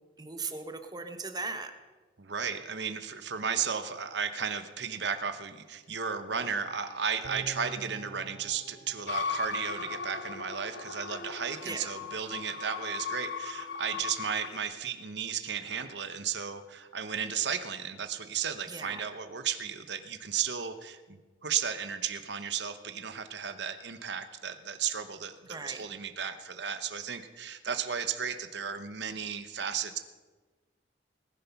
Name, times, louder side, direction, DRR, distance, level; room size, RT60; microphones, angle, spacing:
voice 1, 0.2-1.7 11.6-11.9 18.7-19.1 25.5-25.8, right 3 dB, 20° right, 7 dB, 1.1 m, -38 dB
voice 2, 2.2-30.0, right 7 dB, 60° right, 9 dB, 1.0 m, -34 dB
sound 1, 7.2-10.6 10.9-11.0, right 3 dB, 80° right, 1.8 m, -47 dB
sound 2, 9.1-14.6, left 5 dB, 65° left, 1.0 m, -37 dB
20.0 x 10.5 x 5.9 m, 1.3 s
head